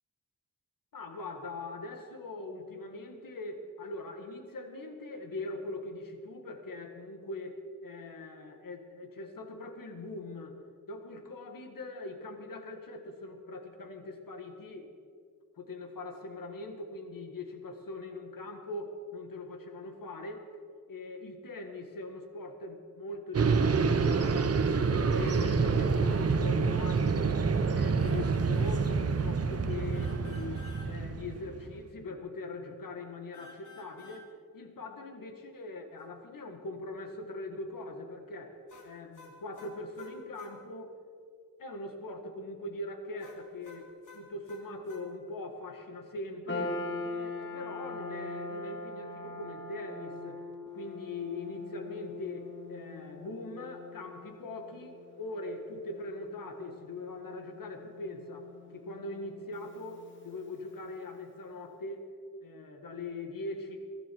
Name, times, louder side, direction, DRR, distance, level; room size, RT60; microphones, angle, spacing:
voice 1, 0.9-10.6 10.9-14.9 15.6-20.5 20.9-34.3 34.5-40.9 41.6-46.8 47.1-50.4 50.7-58.5 58.7-62.1 62.4-63.8, left 2 dB, 85° left, 5 dB, 1.8 m, -41 dB
sound 1, 23.3-31.7, right 5 dB, 45° right, 0.8 m, -27 dB
sound 2, 28.0-28.3 28.5-28.8 29.9-30.9 33.3-34.2 38.7-40.6 43.2-45.0, left 2 dB, 65° left, 2.8 m, -53 dB
sound 3, 46.5-60.9, left 3 dB, 35° left, 2.1 m, -42 dB
22.5 x 13.0 x 4.7 m, 2.2 s
wide cardioid pair, 180°, 33 cm